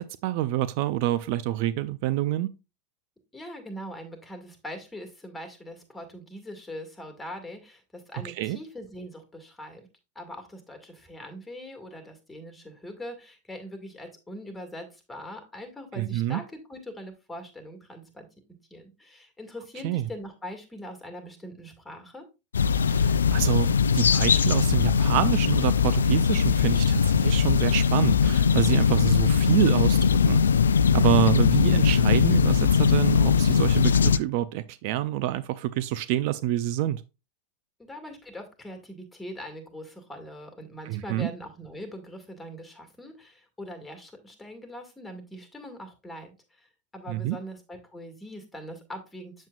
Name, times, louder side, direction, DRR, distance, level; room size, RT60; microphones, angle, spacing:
voice 1, 0.0-2.5 8.2-8.6 16.0-16.4 19.8-20.1 22.9-30.0 30.3-30.4 30.9-37.0 40.9-41.3 47.1-47.4, right 14 dB, 60° right, 0.4 m, -27 dB
voice 2, 3.3-9.9 10.2-18.3 18.7-22.2 37.8-49.5, equal, 10° left, 2.0 m, -42 dB
sound 1, 22.5-34.2, left 6 dB, 90° left, 0.3 m, -21 dB
7.4 x 7.3 x 2.4 m
hypercardioid pair, 100°, 0 cm